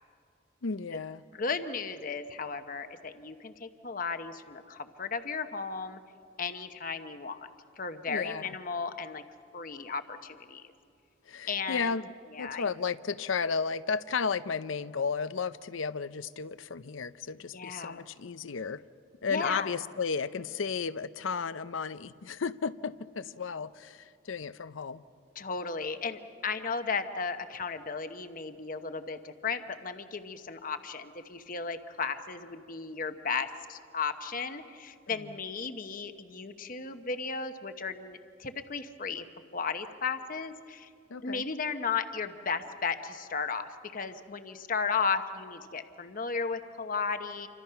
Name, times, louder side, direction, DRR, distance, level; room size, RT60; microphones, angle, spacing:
voice 1, 0.6-1.2 8.1-8.6 11.3-12.1 12.4-18.8 19.2-25.0 35.1-35.4 41.1-41.4, left 5 dB, 85° left, 15 dB, 0.6 m, -33 dB
voice 2, 1.3-6.0 6.4-7.5 7.8-9.2 9.5-10.6 11.5-11.9 12.3-12.6 17.5-18.0 19.3-19.7 25.4-39.2 39.5-40.9 41.2-47.5, left 5 dB, 45° left, 8 dB, 1.0 m, -35 dB
28.5 x 25.0 x 5.7 m, 2.3 s
head